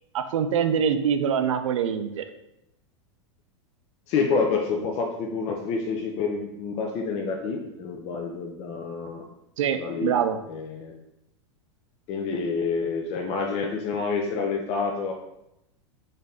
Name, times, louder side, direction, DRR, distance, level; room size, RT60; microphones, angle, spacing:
voice 1, 0.1-2.2 9.6-10.4, right 8 dB, 80° right, 9 dB, 0.4 m, -24 dB
voice 2, 4.1-9.2 9.8-10.2 10.5-10.9 12.1-15.1, left 4 dB, 40° left, 2 dB, 0.5 m, -28 dB
3.9 x 2.7 x 3.4 m, 0.86 s
hypercardioid pair, 110°, 16 cm